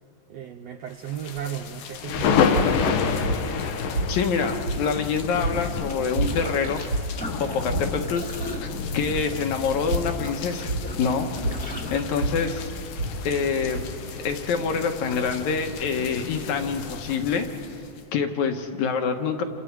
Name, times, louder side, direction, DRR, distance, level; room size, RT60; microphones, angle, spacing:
voice 1, 0.3-2.7, right 9 dB, 75° right, 6 dB, 1.5 m, -35 dB
sound 1, 1.1-18.0, left 6 dB, 90° left, 2.9 m, -30 dB
sound 2, 2.5-14.5, right 2 dB, 50° right, 2.5 m, -31 dB
voice 2, 4.1-6.8 7.4-8.2 8.6-11.3 11.9-12.7 13.2-13.9 14.2-17.5 18.1-19.4, left 5 dB, 70° left, 5 dB, 2.4 m, -26 dB
sound 3, 5.5-6.9 7.2-12.0, equal, 5° left, 1.2 m, -38 dB
29.0 x 26.0 x 4.7 m, 2.6 s
omnidirectional pair, 3.7 m